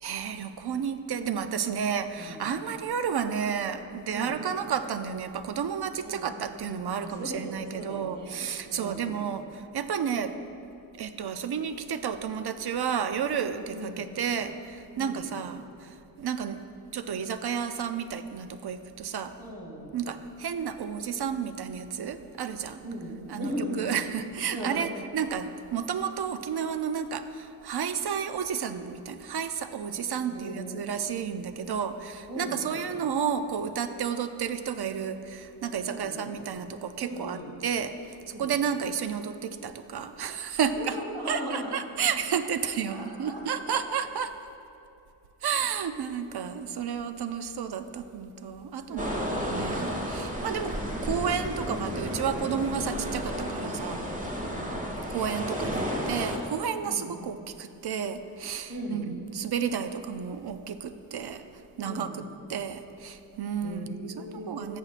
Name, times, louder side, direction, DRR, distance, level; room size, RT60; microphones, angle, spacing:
voice 1, 0.0-10.3 11.0-16.6 16.9-19.3 19.9-22.8 23.3-41.0 41.3-44.4 45.4-49.1 49.4-50.8 51.0-54.0 55.1-61.4 61.8-62.1 62.5-64.8, right 7 dB, 60° right, 9 dB, 0.6 m, -32 dB
voice 2, 2.2-2.5 4.1-4.4 6.0-6.4 6.9-9.2 13.7-14.2 14.9-15.4 19.4-19.9 22.8-23.9 24.5-24.9 30.3-30.8 32.3-32.9 35.9-36.4 37.0-37.5 38.3-38.6 40.8-42.4 42.9-43.8 48.9-49.7 53.4-54.0 54.3-54.8 56.8-57.3 58.7-59.2 61.8-62.3 63.6-64.8, equal, 75° right, -3 dB, 2.2 m, -39 dB
sound 1, 49.0-56.4, equal, 20° right, 1.2 m, -32 dB
14.0 x 7.4 x 2.5 m, 2.6 s
cardioid pair, 70°, 44 cm